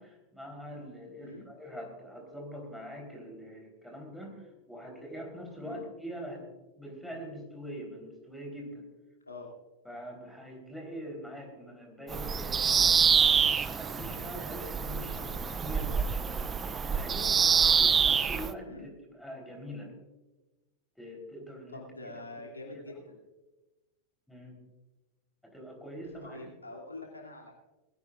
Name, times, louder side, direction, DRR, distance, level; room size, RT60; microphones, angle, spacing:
voice 1, 0.0-6.5 6.8-8.9 9.8-13.1 13.6-19.9 21.0-22.5 24.3-24.6 25.4-26.5, equal, ahead, 0 dB, 3.8 m, -44 dB
Bird vocalization bird call bird song, 12.1-18.5, right 6 dB, 20° right, 0.5 m, -26 dB
voice 2, 21.7-23.2 26.2-27.5, left 2 dB, 80° left, -1 dB, 2.7 m, -45 dB
20.5 x 16.0 x 2.5 m, 1.1 s
figure-of-eight pair, 90°, 0 cm